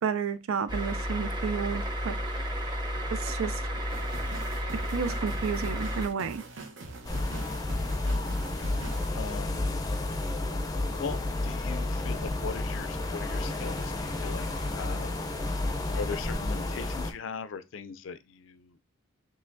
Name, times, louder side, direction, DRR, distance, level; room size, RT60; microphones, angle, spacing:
voice 1, 0.0-2.2 3.1-3.6 4.9-6.4, right 6 dB, 90° right, 0.4 m, -31 dB
sound 1, 0.7-6.1, equal, 20° right, 0.8 m, -32 dB
voice 2, 3.7-4.0 8.6-8.8 9.1-9.6 11.0-11.2 11.4-15.1 15.9-18.8, left 5 dB, 70° left, 0.4 m, -39 dB
sound 2, 3.9-9.1, right 3 dB, 70° right, 0.8 m, -43 dB
sound 3, 7.0-17.1, left 2 dB, 20° left, 0.5 m, -31 dB
5.5 x 3.1 x 2.6 m
head